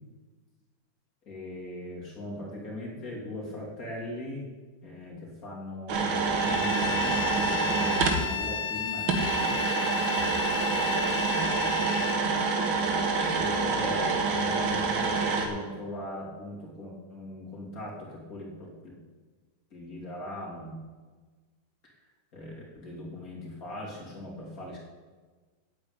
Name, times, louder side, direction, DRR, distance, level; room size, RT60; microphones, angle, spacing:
voice 1, 1.3-4.5 4.8-9.6 10.8-12.0 13.2-19.0 19.7-20.8 21.8-21.9 22.3-24.8, left 1 dB, 45° left, -4 dB, 3.5 m, -39 dB
sound 1, 5.9-8.2 9.1-15.5, right 4 dB, 90° right, 2.2 m, -27 dB
Bowed string instrument, 6.3-12.2, left 7 dB, 65° left, 1.1 m, -34 dB
8.6 x 8.2 x 9.0 m, 1.4 s
omnidirectional pair, 2.1 m